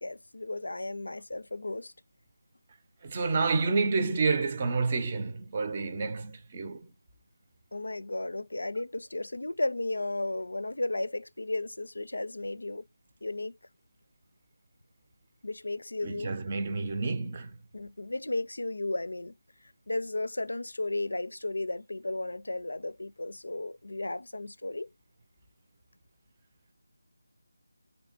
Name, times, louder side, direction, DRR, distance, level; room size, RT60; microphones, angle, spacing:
voice 1, 0.0-1.9 7.7-12.9 13.2-13.6 15.4-16.3 17.7-19.3 19.9-24.9, left 2 dB, 80° left, 0.4 m, -34 dB
voice 2, 3.0-6.9 16.0-17.5, right 4 dB, 30° right, 0.6 m, -29 dB
3.3 x 2.7 x 4.3 m
figure-of-eight pair, 165°, 0 cm